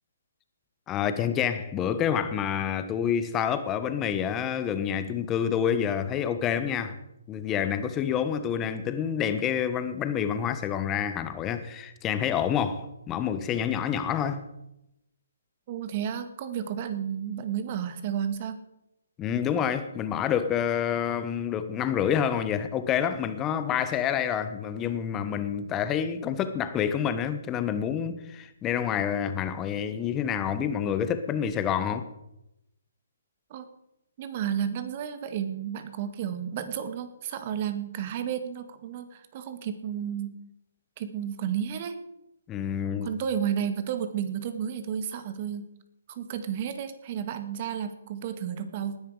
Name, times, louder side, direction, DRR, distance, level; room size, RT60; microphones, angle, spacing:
voice 1, 0.9-7.0 7.3-14.5 19.2-32.1 42.5-43.1, left 8 dB, 20° left, 1.2 m, -28 dB
voice 2, 15.7-18.6 33.5-33.7 34.2-40.4 41.0-42.0 43.0-45.7 46.1-49.0, right 8 dB, 35° right, 1.8 m, -32 dB
19.0 x 10.5 x 5.0 m
figure-of-eight pair, 140°, 0 cm